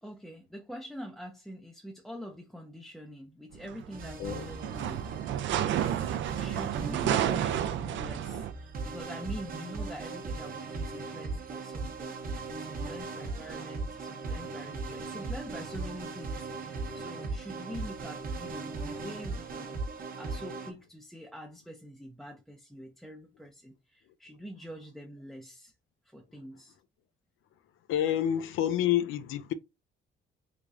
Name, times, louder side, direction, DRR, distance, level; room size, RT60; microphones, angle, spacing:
voice 1, 0.0-5.1 5.5-12.2 12.5-19.8 20.1-25.7 26.0-26.8, equal, ahead, 0.4 m, -45 dB
sound 1, 3.5-8.5, right 10 dB, 70° right, 0.4 m, -31 dB
sound 2, 3.9-20.7, right 3 dB, 45° right, 0.8 m, -38 dB
voice 2, 4.2-4.5 27.9-29.5, left 11 dB, 85° left, 0.5 m, -28 dB
3.4 x 3.3 x 2.5 m
cardioid pair, 140°, 20 cm